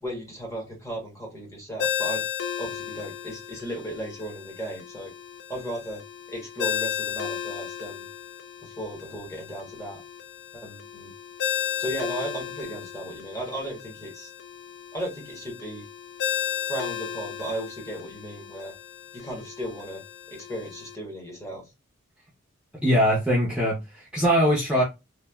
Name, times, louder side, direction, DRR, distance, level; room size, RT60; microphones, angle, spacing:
voice 1, 0.0-2.2 2.6-5.1 5.5-6.0 6.3-8.1 8.6-10.0 10.5-11.1 11.8-14.3 14.9-15.8 16.7-18.7 19.1-21.6, right 1 dB, 15° left, 1.0 m, -35 dB
Ringtone, 1.8-20.9, left 9 dB, 55° left, 0.3 m, -34 dB
voice 2, 22.8-24.8, equal, 5° right, 0.6 m, -22 dB
3.1 x 2.2 x 2.2 m
head